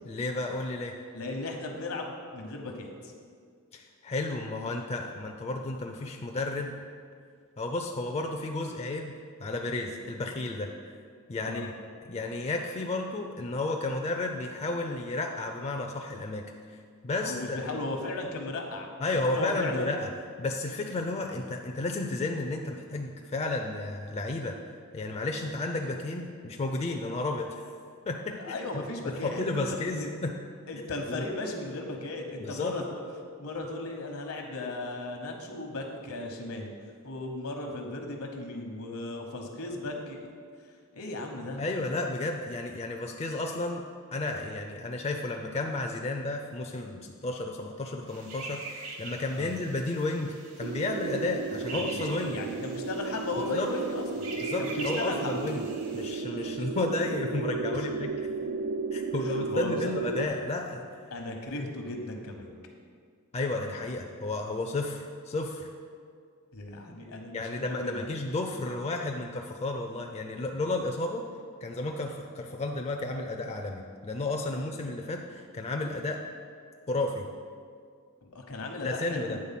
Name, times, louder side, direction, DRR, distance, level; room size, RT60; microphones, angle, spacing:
voice 1, 0.1-0.9 3.7-6.7 7.6-10.7 11.3-11.7 12.1-16.4 17.0-17.8 19.0-20.1 20.4-24.5 24.9-27.7 28.1-28.6 29.1-30.3 31.1-31.2 32.4-32.7 41.6-43.8 44.1-52.4 53.5-53.7 54.4-55.7 55.9-58.3 58.9-61.1 63.3-65.7 67.3-71.2 71.6-76.2 76.9-77.3 78.8-79.4, left 2 dB, 30° left, 2 dB, 0.4 m, -32 dB
voice 2, 1.1-3.1 11.5-11.7 17.2-20.0 28.3-29.6 30.0-30.1 30.7-33.0 33.4-36.7 37.0-40.3 40.9-41.6 49.3-49.6 51.7-54.3 54.6-55.5 57.7-57.9 59.2-59.9 61.1-62.5 66.5-68.1 74.5-74.6 78.2-79.4, left 2 dB, 75° left, 3 dB, 1.0 m, -36 dB
sound 1, 48.1-56.2, right 3 dB, 70° right, 1.1 m, -43 dB
sound 2, 50.6-60.3, right 4 dB, 85° right, 0.4 m, -34 dB
8.8 x 3.8 x 5.8 m, 2.1 s
head